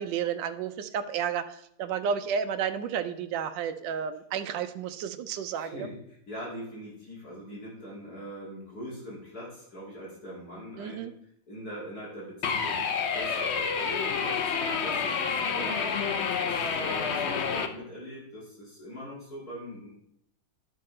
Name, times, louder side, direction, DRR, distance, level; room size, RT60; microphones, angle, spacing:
voice 1, 0.0-5.9 7.5-7.6 10.8-11.1, right 7 dB, 75° right, 9 dB, 1.3 m, -32 dB
voice 2, 5.5-11.1 11.5-19.9, equal, 50° left, -5 dB, 2.7 m, -42 dB
sound 1, 12.4-17.7, left 6 dB, 75° left, 0.6 m, -29 dB
12.0 x 5.7 x 4.3 m, 0.73 s
omnidirectional pair, 2.1 m